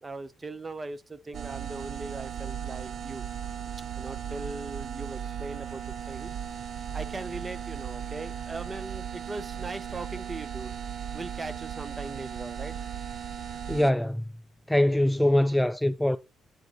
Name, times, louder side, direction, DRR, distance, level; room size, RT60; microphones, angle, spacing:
voice 1, 0.0-3.2 4.0-6.3 6.9-10.7 11.1-12.8, right 3 dB, 25° right, 0.8 m, -39 dB
sound 1, 1.3-13.9, right 8 dB, 60° right, 0.6 m, -37 dB
voice 2, 13.7-14.2 14.7-16.2, left 1 dB, 5° left, 0.4 m, -23 dB
7.9 x 4.6 x 3.9 m
cardioid pair, 90°, 0 cm